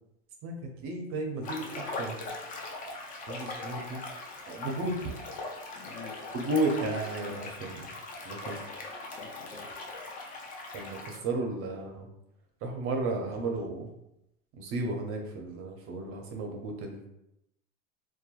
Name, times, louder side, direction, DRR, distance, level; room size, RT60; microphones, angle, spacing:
voice 1, 0.8-2.2 3.3-4.0 4.5-5.1 6.3-7.9 8.2-8.9 10.7-12.1 12.6-13.9 14.6-17.1, right 2 dB, 40° right, 2 dB, 0.6 m, -33 dB
sound 1, 1.4-11.2, left 2 dB, 25° left, 0.4 m, -40 dB
voice 2, 5.7-6.3 9.1-9.8, left 5 dB, 75° left, 4 dB, 0.6 m, -48 dB
2.9 x 2.2 x 2.3 m, 0.85 s
supercardioid pair, 115°, 36 cm